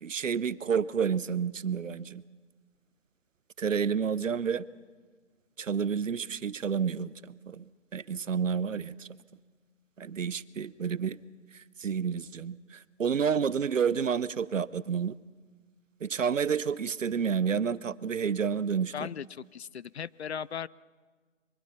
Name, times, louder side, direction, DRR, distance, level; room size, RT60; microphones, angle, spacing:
voice 1, 0.0-2.2 3.6-4.7 5.6-9.1 10.0-11.2 11.5-15.2 16.0-18.9, right 7 dB, 85° right, 19 dB, 0.8 m, -30 dB
voice 2, 18.9-20.7, left 8 dB, 60° left, 21 dB, 0.5 m, -37 dB
23.5 x 23.0 x 5.8 m, 1.5 s
figure-of-eight pair, 160°, 38 cm